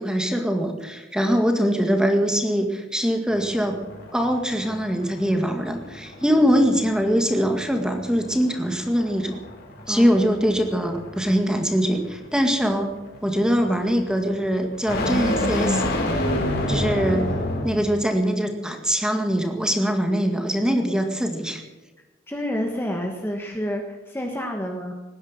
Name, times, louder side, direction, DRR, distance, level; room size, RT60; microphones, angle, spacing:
voice 1, 0.0-3.8 4.1-9.4 9.9-12.9 13.2-15.8 16.7-17.3 17.6-21.6, equal, 5° right, 4 dB, 2.0 m, -22 dB
sound 1, 3.3-17.9, left 1 dB, 55° left, 4.2 m, -29 dB
voice 2, 22.3-24.9, equal, 10° left, 2 dB, 1.5 m, -29 dB
19.0 x 10.0 x 7.4 m, 1.2 s
head